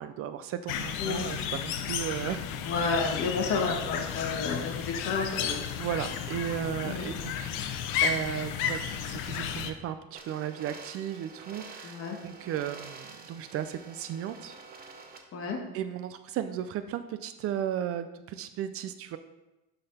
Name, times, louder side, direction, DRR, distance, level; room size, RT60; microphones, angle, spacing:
voice 1, 0.0-2.5 5.8-7.5 8.0-14.5 15.7-19.2, right 10 dB, 45° right, 10 dB, 0.4 m, -35 dB
sound 1, 0.7-9.7, left 8 dB, 85° left, 0.8 m, -33 dB
voice 2, 2.6-5.6 6.8-7.1 11.8-12.2 15.3-15.6, left 4 dB, 45° left, 0 dB, 1.7 m, -31 dB
sound 2, 10.1-15.2, right 4 dB, 30° right, 0.9 m, -48 dB
11.5 x 4.0 x 4.2 m, 1.0 s
cardioid pair, 155°, 31 cm